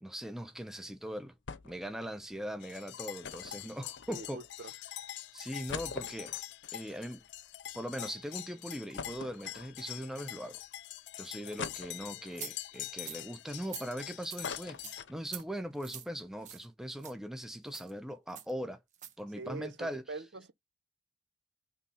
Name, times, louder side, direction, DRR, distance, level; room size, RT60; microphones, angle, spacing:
voice 1, 0.0-1.3 1.6-4.4 5.3-6.4 6.7-7.2 7.7-10.6 11.2-18.8 19.2-20.0, equal, 5° right, 0.7 m, -40 dB
sound 1, 1.5-1.9 2.2-2.3 3.2-4.5 5.0-5.1 5.4-7.9 8.3-8.4 9.0-10.1 10.6-10.7 11.6-12.4 13.0-14.0 14.2-15.6 15.9-16.0 16.2-16.5, left 5 dB, 90° left, 0.7 m, -44 dB
sound 2, 2.6-15.0, left 13 dB, 70° left, 0.3 m, -45 dB
voice 2, 4.1-4.7 19.4-20.5, right 3 dB, 80° right, 0.8 m, -43 dB
sound 3, 12.4-12.5 13.0-13.2 13.6-13.9 14.3-14.4 14.8-15.0 15.3-15.4 15.8-16.1 16.4-16.7 17.0-17.1 17.7-17.9 18.4-18.5 18.9-19.1, right 9 dB, 40° right, 1.0 m, -44 dB
5.8 x 3.7 x 5.6 m
head